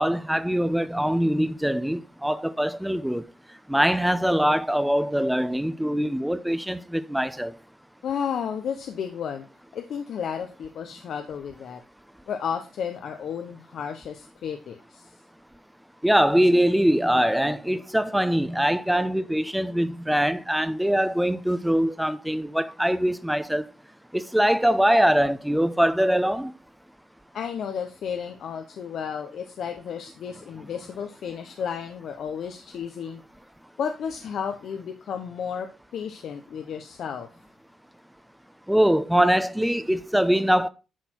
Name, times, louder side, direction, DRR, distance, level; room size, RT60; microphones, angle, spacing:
voice 1, 0.0-3.2 3.7-7.5 16.0-23.6 24.1-26.5 38.7-40.7, equal, 5° right, 0.7 m, -23 dB
voice 2, 8.0-9.5 9.7-11.8 12.3-15.1 27.3-33.2 33.8-37.3, left 7 dB, 65° left, 0.9 m, -33 dB
10.5 x 4.3 x 4.5 m
cardioid pair, 90°, 0 cm